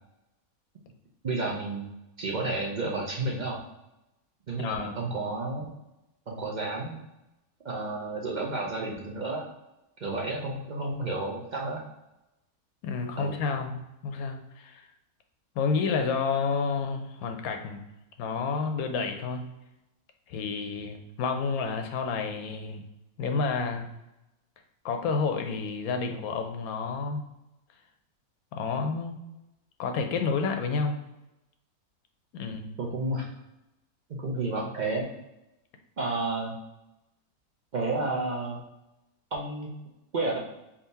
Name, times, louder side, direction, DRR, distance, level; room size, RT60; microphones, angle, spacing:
voice 1, 1.2-1.9 2.2-3.6 4.5-5.7 6.3-7.0 7.6-9.5 10.0-11.8 13.2-13.4 32.6-33.3 34.1-35.1 36.0-36.6 37.7-38.6 39.3-39.7 40.1-40.4, right 2 dB, 65° right, -2 dB, 0.4 m, -31 dB
voice 2, 4.6-5.0 12.8-14.8 15.6-17.8 18.2-19.5 20.3-22.8 23.2-23.9 24.8-27.2 28.5-29.2 29.8-31.0 32.3-32.8, left 5 dB, 75° left, 5 dB, 1.0 m, -30 dB
3.7 x 2.7 x 4.0 m, 0.93 s
omnidirectional pair, 1.6 m